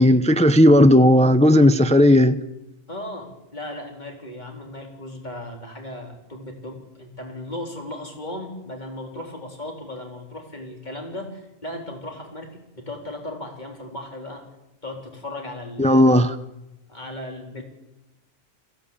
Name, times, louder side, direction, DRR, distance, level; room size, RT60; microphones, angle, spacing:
voice 1, 0.0-2.4 15.8-16.3, left 1 dB, 5° left, 0.7 m, -14 dB
voice 2, 2.9-14.5 14.8-16.2 16.9-17.6, left 1 dB, 40° left, 3.9 m, -36 dB
22.0 x 16.0 x 8.6 m
omnidirectional pair, 1.2 m